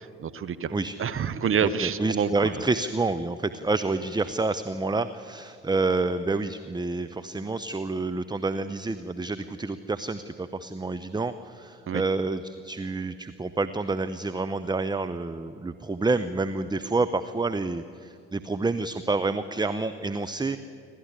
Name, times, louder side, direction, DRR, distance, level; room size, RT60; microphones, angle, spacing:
voice 1, 0.0-0.7 1.0-2.5 11.9-12.0, right 7 dB, 45° right, 12 dB, 1.1 m, -27 dB
voice 2, 1.6-20.6, right 3 dB, 15° right, 11 dB, 0.9 m, -28 dB
28.0 x 13.0 x 9.9 m, 2.4 s
hypercardioid pair, 55°, 31 cm